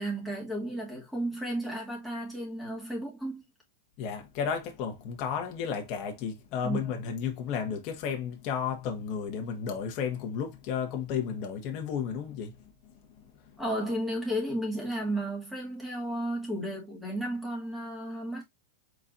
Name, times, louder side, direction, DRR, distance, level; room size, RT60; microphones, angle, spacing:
voice 1, 0.0-3.4 6.6-6.8 13.6-18.4, right 1 dB, 5° right, 2.5 m, -33 dB
voice 2, 4.0-12.5, left 7 dB, 40° left, 1.4 m, -33 dB
4.7 x 4.3 x 2.5 m
supercardioid pair, 150°, 0 cm